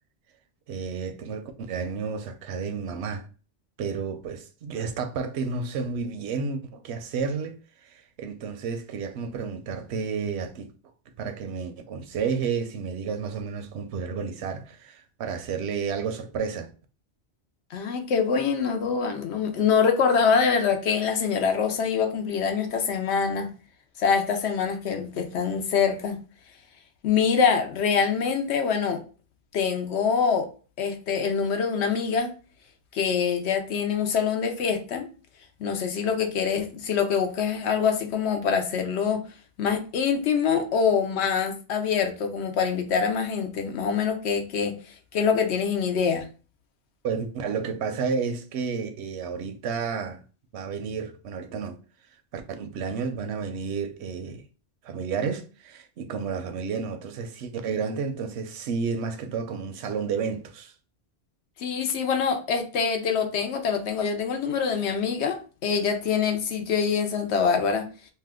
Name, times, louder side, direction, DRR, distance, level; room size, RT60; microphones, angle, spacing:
voice 1, 0.7-3.3 3.8-10.7 11.2-16.7 47.0-50.2 50.5-51.8 52.3-54.4 54.8-60.7, right 5 dB, 90° right, 0.9 m, -31 dB
voice 2, 17.7-23.5 24.0-26.2 27.0-29.0 29.5-30.5 30.8-32.3 32.9-35.1 35.6-39.2 39.6-46.3 61.6-67.9, left 6 dB, 85° left, 0.9 m, -25 dB
2.7 x 2.2 x 3.5 m
omnidirectional pair, 1.1 m